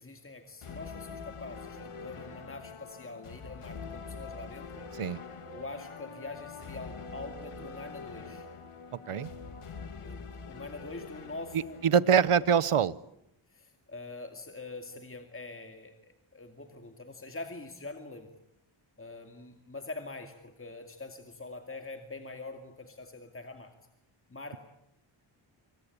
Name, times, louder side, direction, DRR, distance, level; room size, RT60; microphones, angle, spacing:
voice 1, 0.0-4.8 5.5-8.5 10.0-11.8 12.1-12.5 13.5-18.3 19.0-23.7 24.3-24.6, left 2 dB, 25° left, 5 dB, 2.4 m, -44 dB
sound 1, 0.6-12.6, left 5 dB, 90° left, 2.2 m, -44 dB
voice 2, 11.8-12.9, right 7 dB, 85° right, 19 dB, 1.0 m, -24 dB
26.5 x 25.0 x 8.6 m, 0.80 s
wide cardioid pair, 105°, 50 cm